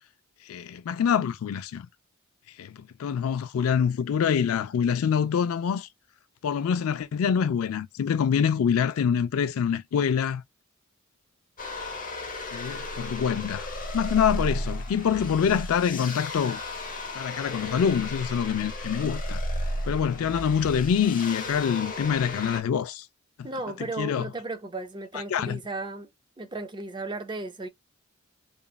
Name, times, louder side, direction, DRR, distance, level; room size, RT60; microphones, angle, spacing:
voice 1, 0.5-1.9 2.6-5.9 6.4-10.4 12.5-13.7 13.9-16.6 17.1-19.4 19.9-23.1 24.0-24.3 25.1-25.6, left 7 dB, 75° left, 0.3 m, -25 dB
sound 1, 11.6-22.6, left 1 dB, 40° left, 0.8 m, -34 dB
voice 2, 23.4-26.1 26.4-27.7, right 2 dB, 20° right, 0.5 m, -35 dB
3.0 x 2.5 x 2.3 m
head